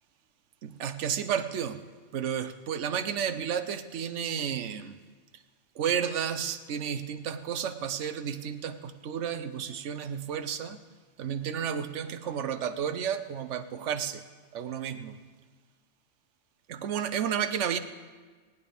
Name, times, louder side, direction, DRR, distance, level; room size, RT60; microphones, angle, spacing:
voice 1, 0.6-1.8 2.1-4.9 5.8-10.8 11.2-14.2 14.5-15.2 16.7-17.8, right 8 dB, 80° right, 10 dB, 1.1 m, -32 dB
19.0 x 11.0 x 3.5 m, 1.4 s
omnidirectional pair, 1.2 m